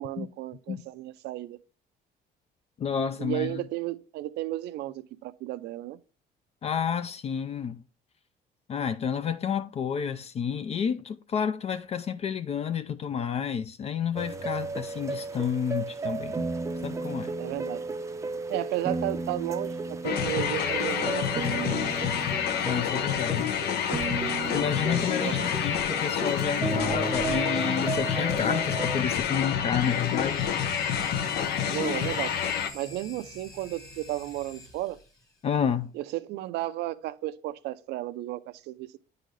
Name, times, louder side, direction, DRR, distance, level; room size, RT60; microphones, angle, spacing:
voice 1, 0.0-1.6 3.2-6.0 17.4-17.9 18.5-21.9 25.2-25.5 31.7-32.4 32.7-35.0 35.9-39.0, right 15 dB, 80° right, 0.5 m, -33 dB
voice 2, 2.8-3.6 6.6-7.8 8.7-16.4 16.8-17.3 22.6-23.6 24.5-30.5 35.4-35.9, left 7 dB, 40° left, 0.4 m, -30 dB
sound 1, 14.2-29.0, right 3 dB, 20° right, 0.5 m, -34 dB
sound 2, 20.0-32.7, left 8 dB, 75° left, 0.7 m, -28 dB
sound 3, 29.8-35.3, left 2 dB, 20° left, 1.6 m, -47 dB
9.1 x 3.8 x 3.2 m
cardioid pair, 110°, 17 cm